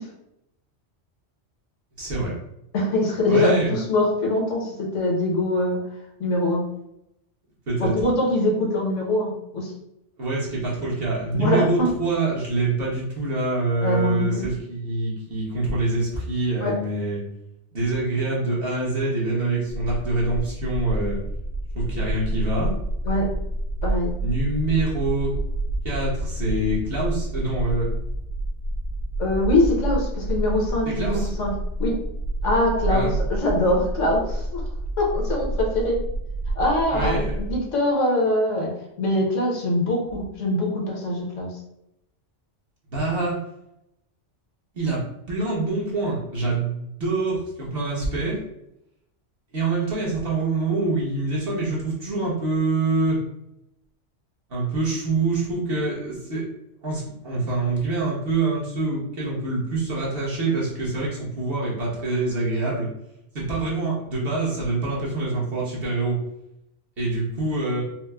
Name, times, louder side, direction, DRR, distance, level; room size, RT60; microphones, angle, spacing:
voice 1, 2.0-2.3 3.3-3.7 7.7-8.0 10.2-17.2 17.7-21.2 21.7-22.7 24.2-25.3 25.8-27.9 30.8-31.3 32.9-33.1 36.9-37.3 42.9-43.4 44.7-45.0 45.3-48.4 49.5-53.2 54.5-56.5 56.8-62.9 63.3-66.2 67.0-67.8, right 2 dB, 55° right, -6 dB, 1.3 m, -25 dB
voice 2, 2.7-5.8 6.2-6.6 7.8-9.7 11.3-11.9 13.8-14.4 16.6-16.7 23.0-23.3 23.8-24.2 29.2-31.5 31.8-32.0 32.4-34.6 35.0-36.0 36.5-38.7 39.0-41.6, left 1 dB, 80° left, -1 dB, 1.2 m, -23 dB
sound 1, 19.7-37.6, right 1 dB, 70° right, 0.8 m, -28 dB
4.5 x 2.0 x 2.3 m, 0.82 s
omnidirectional pair, 1.2 m